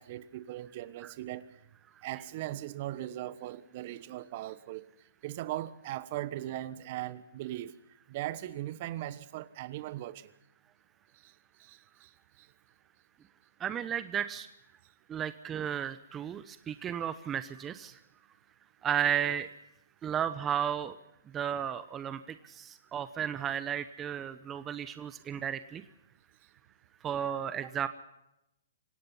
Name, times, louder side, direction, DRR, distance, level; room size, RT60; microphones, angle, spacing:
voice 1, 0.0-1.4 2.0-4.9 5.2-7.8 8.1-10.3 11.2-11.3 11.6-12.1 12.4-12.5, right 14 dB, 45° right, 16 dB, 1.2 m, -39 dB
voice 2, 13.6-14.5 15.1-17.9 18.8-19.5 20.0-20.9 21.3-22.2 22.6-25.8 27.0-27.9, right 9 dB, 20° right, 12 dB, 0.9 m, -33 dB
27.0 x 17.0 x 5.6 m, 0.87 s
hypercardioid pair, 135°, 0 cm